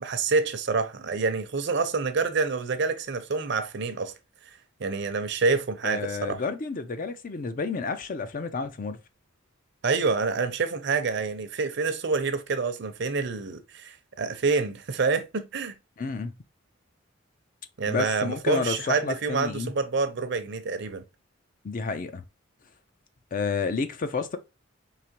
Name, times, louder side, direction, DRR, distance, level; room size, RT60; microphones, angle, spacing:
voice 1, 0.0-4.1 4.8-6.4 9.8-15.7 17.8-21.0, right 4 dB, 60° right, 0.6 m, -27 dB
voice 2, 5.8-9.0 16.0-16.3 17.9-19.7 21.6-22.2 23.3-24.4, left 4 dB, 45° left, 0.5 m, -30 dB
4.8 x 2.9 x 2.9 m
head